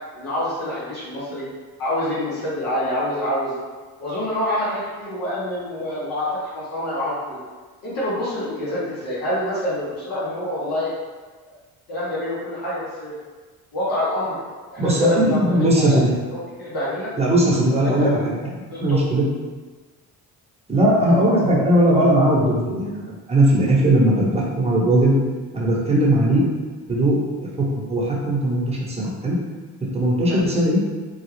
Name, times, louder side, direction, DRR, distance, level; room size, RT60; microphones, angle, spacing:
voice 1, 0.1-1.5 1.8-3.5 4.0-7.4 7.8-10.9 11.5-11.6 11.9-13.1 13.7-14.4 14.7-17.1 17.7-18.3 18.7-19.0 30.3-30.4, left 1 dB, 60° left, -9 dB, 1.1 m, -27 dB
voice 2, 14.8-16.1 17.2-18.2 18.8-19.2 20.7-25.1 25.5-26.4 26.9-29.4 29.9-30.8, right 1 dB, 15° right, -5 dB, 1.0 m, -18 dB
3.1 x 2.3 x 3.2 m, 1.3 s
cardioid pair, 90°, 39 cm